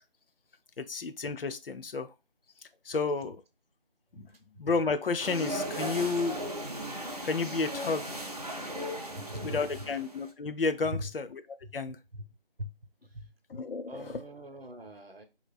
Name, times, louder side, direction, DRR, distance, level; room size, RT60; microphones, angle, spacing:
voice 1, 0.8-2.1 2.8-3.4 4.1-4.3 4.6-6.4 7.2-8.2 9.4-11.4 11.7-12.0 13.5-14.2, left 4 dB, 75° left, 0.5 m, -31 dB
voice 2, 4.2-4.6 9.1-9.7 10.8-11.2 11.6-11.8 12.1-13.3 13.9-15.2, equal, 85° right, 0.9 m, -42 dB
sound 1, 5.2-10.3, right 1 dB, 40° right, 0.5 m, -37 dB
2.9 x 2.8 x 2.3 m
figure-of-eight pair, 165°, 29 cm